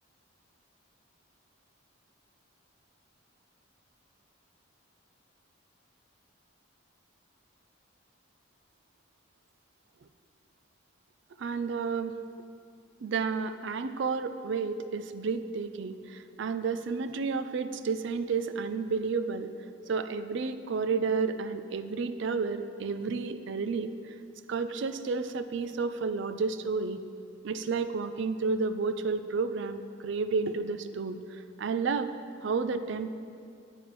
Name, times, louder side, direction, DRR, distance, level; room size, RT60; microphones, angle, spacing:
voice 1, 11.4-12.1 13.0-19.5 19.9-24.1 24.5-27.0 27.4-32.1 32.4-33.2, right 4 dB, 60° right, 10 dB, 0.4 m, -31 dB
9.0 x 8.9 x 3.1 m, 2.4 s
head